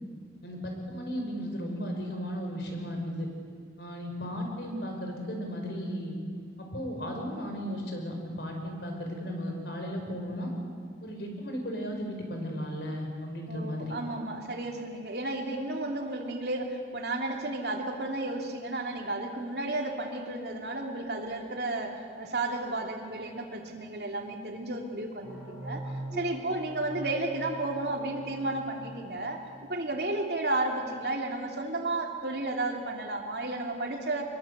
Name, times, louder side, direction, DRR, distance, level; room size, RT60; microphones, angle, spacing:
voice 1, 0.4-3.3 3.8-6.2 6.6-10.5 11.0-14.0, equal, 65° left, 2 dB, 5.1 m, -35 dB
voice 2, 13.5-25.8 26.1-29.4 29.7-34.2, right 2 dB, 60° right, 2 dB, 2.9 m, -33 dB
sound 1, 25.2-29.7, right 2 dB, 20° left, 5.3 m, -42 dB
24.0 x 22.0 x 8.2 m, 2.1 s
head